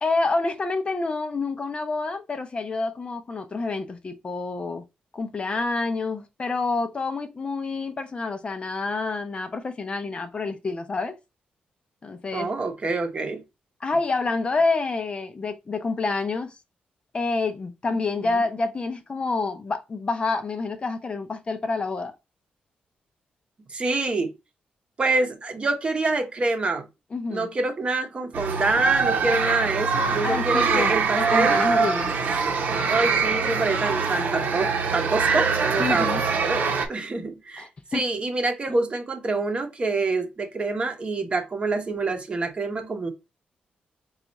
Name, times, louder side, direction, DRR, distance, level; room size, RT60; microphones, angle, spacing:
voice 1, 0.0-4.8 5.1-11.1 12.0-12.5 13.8-16.5 17.1-22.1 27.1-27.5 30.2-32.1 35.8-36.2 37.6-38.0, left 3 dB, 35° left, 0.6 m, -28 dB
voice 2, 12.3-13.4 23.7-24.3 25.0-26.9 27.3-31.6 32.9-43.1, right 3 dB, 35° right, 0.8 m, -26 dB
sound 1, 28.3-36.9, right 5 dB, 70° right, 0.8 m, -24 dB
4.1 x 2.4 x 4.0 m
cardioid pair, 90°, 3 cm